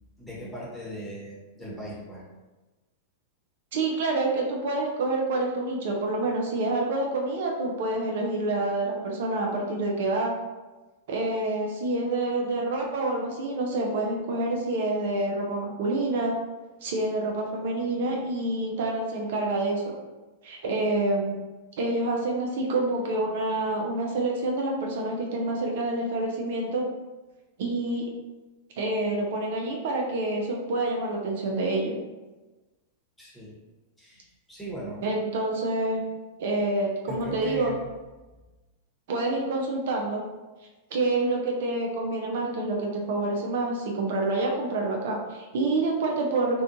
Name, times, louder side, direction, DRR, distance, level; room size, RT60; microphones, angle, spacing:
voice 1, 0.2-2.2 33.2-33.5 34.0-35.0 37.1-37.9, equal, 10° left, -6 dB, 1.0 m, -38 dB
voice 2, 3.7-10.3 11.1-16.3 16.8-19.9 20.4-21.4 21.8-26.8 27.6-28.1 28.8-32.0 35.0-36.0 36.4-37.7 39.1-40.2 40.9-46.6, right 2 dB, 65° right, 0 dB, 0.4 m, -27 dB
2.4 x 2.2 x 2.6 m, 1.2 s
hypercardioid pair, 100°, 0 cm